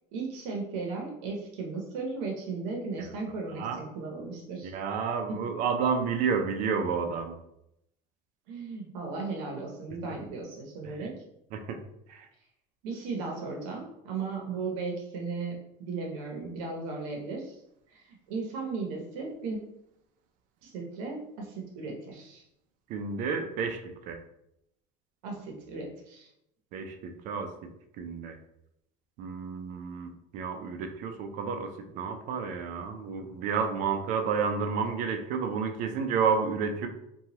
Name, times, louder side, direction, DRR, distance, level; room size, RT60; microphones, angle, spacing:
voice 1, 0.1-4.7 5.3-5.4 8.5-11.2 12.8-17.6 17.9-19.6 20.6-22.4 25.2-26.3, right 4 dB, 80° right, 0 dB, 0.7 m, -36 dB
voice 2, 4.6-7.3 11.0-11.1 11.5-11.8 12.1-12.3 22.9-23.8 24.1-24.2 26.7-27.5 28.0-28.4 29.2-31.7 31.9-36.9, right 6 dB, 50° right, 6 dB, 0.4 m, -30 dB
2.9 x 2.3 x 2.8 m, 0.80 s
cardioid pair, 140°, 17 cm